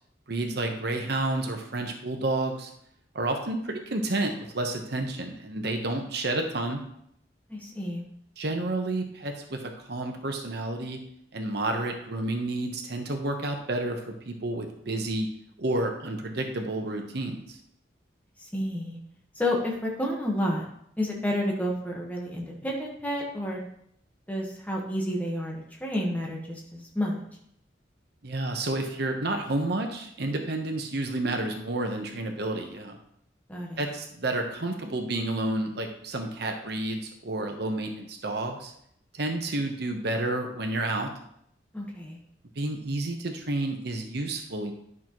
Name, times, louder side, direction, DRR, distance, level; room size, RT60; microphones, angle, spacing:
voice 1, 0.3-2.7 3.1-6.8 8.4-9.6 9.9-11.0 11.3-15.3 15.6-17.6 28.2-33.0 33.8-38.7 39.1-41.1 42.6-44.7, right 2 dB, 60° right, 3 dB, 1.0 m, -30 dB
voice 2, 7.5-8.0 18.4-19.0 19.4-20.6 21.0-23.7 24.3-27.2 33.5-33.8 41.7-42.2, left 1 dB, 10° left, -2 dB, 1.3 m, -30 dB
11.0 x 6.1 x 3.1 m, 0.71 s
head